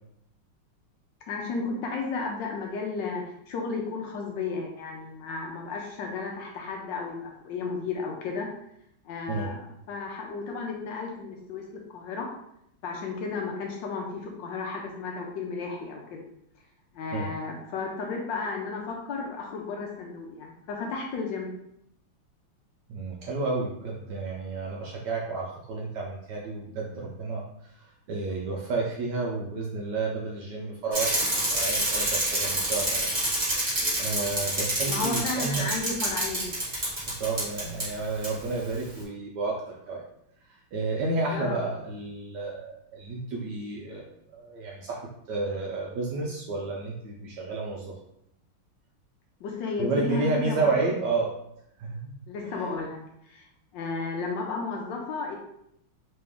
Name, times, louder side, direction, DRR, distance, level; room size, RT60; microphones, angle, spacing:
voice 1, 1.3-8.5 9.0-11.6 11.9-12.3 12.8-16.2 16.9-21.5 34.9-36.5 41.3-41.6 49.4-51.0 52.3-53.0 53.2-53.5 53.7-55.4, left 4 dB, 75° left, 0 dB, 1.1 m, -33 dB
voice 2, 22.9-27.4 28.1-33.1 34.0-35.7 37.2-40.0 40.7-44.0 44.3-45.0 45.3-47.9 49.8-51.3 51.8-52.1 52.4-52.7, right 3 dB, 75° right, -2 dB, 1.0 m, -31 dB
Bicycle, 30.9-37.9 38.2-38.3, right 1 dB, 25° right, 1.2 m, -27 dB
3.3 x 3.1 x 3.5 m, 0.76 s
omnidirectional pair, 2.3 m